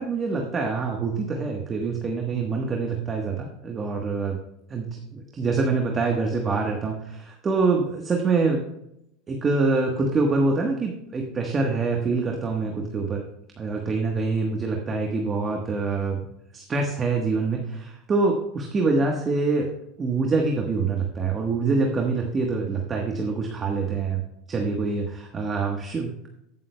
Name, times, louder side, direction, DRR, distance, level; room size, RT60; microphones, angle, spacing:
voice 1, 0.0-4.4 4.7-8.6 9.3-13.2 13.6-16.2 16.5-19.7 20.0-24.2 24.5-26.3, right 4 dB, 25° right, 2 dB, 1.3 m, -25 dB
14.0 x 7.4 x 2.3 m, 0.81 s
supercardioid pair, 105°, 0 cm